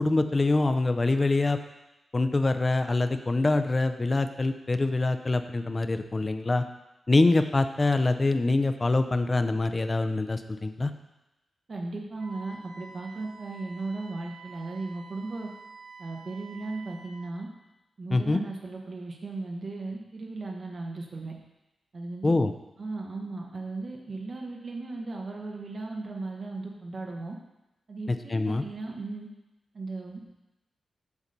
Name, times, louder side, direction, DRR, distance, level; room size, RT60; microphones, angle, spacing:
voice 1, 0.0-1.6 2.1-6.6 7.1-10.9 18.1-18.4 22.2-22.5 28.1-28.6, left 2 dB, 25° left, 9 dB, 0.5 m, -25 dB
voice 2, 11.7-15.5 16.0-17.5 18.0-21.3 21.9-22.3 22.8-27.4 27.9-29.3 29.7-30.3, right 3 dB, 40° right, 1 dB, 1.0 m, -36 dB
Wind instrument woodwind instrument, 12.2-17.2, right 4 dB, 60° right, 1.9 m, -48 dB
7.2 x 4.1 x 6.6 m, 0.96 s
wide cardioid pair, 125°, 0 cm